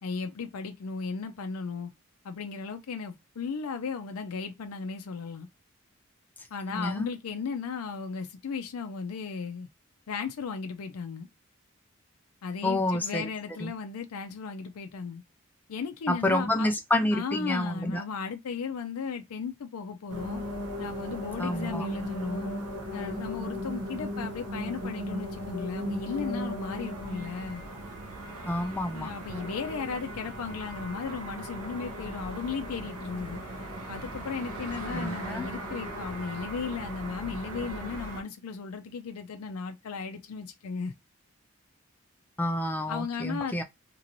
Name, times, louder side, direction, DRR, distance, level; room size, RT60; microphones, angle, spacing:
voice 1, 0.0-1.9 2.2-5.5 6.5-9.7 10.1-11.3 12.4-15.2 15.7-16.7 17.1-20.4 20.8-22.5 22.9-27.6 28.9-33.4 33.9-40.9 42.9-43.6, left 5 dB, 85° left, 0.4 m, -36 dB
voice 2, 6.7-7.1 12.6-13.3 13.6-13.7 16.1-18.0 21.4-21.9 28.4-29.1 34.9-35.5 42.4-43.6, left 1 dB, 10° left, 0.4 m, -29 dB
sound 1, 20.1-38.2, equal, 90° right, 0.8 m, -37 dB
3.0 x 3.0 x 2.6 m
head